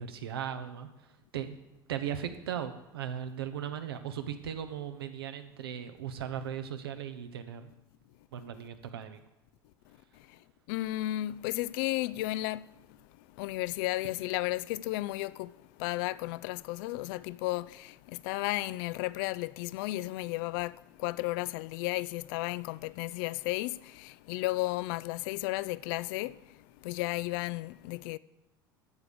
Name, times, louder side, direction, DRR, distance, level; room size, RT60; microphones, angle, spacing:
voice 1, 0.0-1.6 1.9-7.7 8.3-9.2, right 9 dB, 75° right, 0.9 m, -38 dB
voice 2, 10.7-12.7 13.4-15.5 15.8-26.4 26.8-28.2, left 18 dB, 60° left, 0.4 m, -33 dB
13.5 x 4.8 x 6.9 m
figure-of-eight pair, 70°, 13 cm